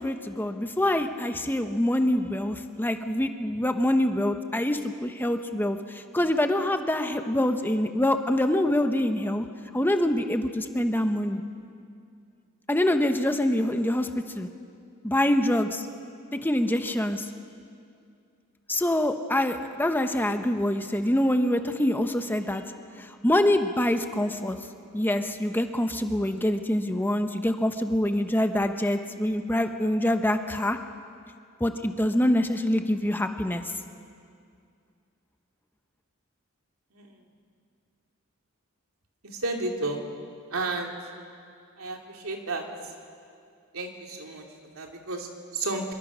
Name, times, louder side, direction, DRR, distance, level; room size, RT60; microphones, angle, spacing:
voice 1, 0.0-9.4 9.7-11.4 12.7-14.5 15.0-15.9 16.4-17.3 18.7-22.6 23.0-24.6 24.9-30.8 31.6-33.6, left 1 dB, 10° left, 6 dB, 0.9 m, -25 dB
voice 2, 39.2-40.0 40.5-40.9 41.8-42.9 43.7-45.9, right 2 dB, 80° right, 1 dB, 2.8 m, -33 dB
25.0 x 23.0 x 6.2 m, 2.3 s
head